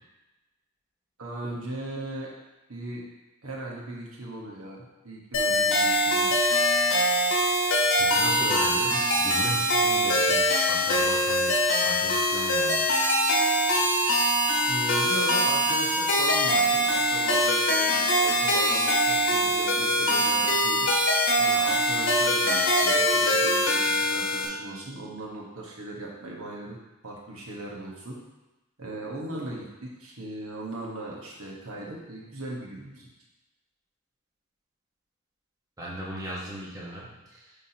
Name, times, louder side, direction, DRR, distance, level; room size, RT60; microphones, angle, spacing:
voice 1, 1.2-2.3 2.7-3.0 3.4-6.3 14.7-20.9 21.4-26.8 27.0-28.2 28.8-33.1, right 2 dB, 75° right, -3 dB, 1.3 m, -38 dB
sound 1, 5.3-24.5, equal, 60° left, 1.1 m, -23 dB
voice 2, 8.0-12.9 35.8-37.5, right 1 dB, 15° right, -6 dB, 1.1 m, -37 dB
9.9 x 3.7 x 2.9 m, 1.0 s
head